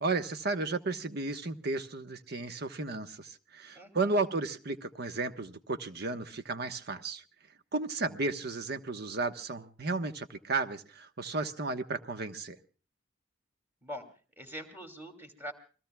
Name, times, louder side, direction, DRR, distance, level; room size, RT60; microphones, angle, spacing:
voice 1, 0.0-7.2 7.7-12.6, right 3 dB, 55° right, 9 dB, 1.2 m, -33 dB
voice 2, 3.8-4.2 13.8-14.1 14.4-15.5, equal, 10° right, 6 dB, 2.7 m, -43 dB
28.5 x 20.5 x 2.3 m, 0.38 s
head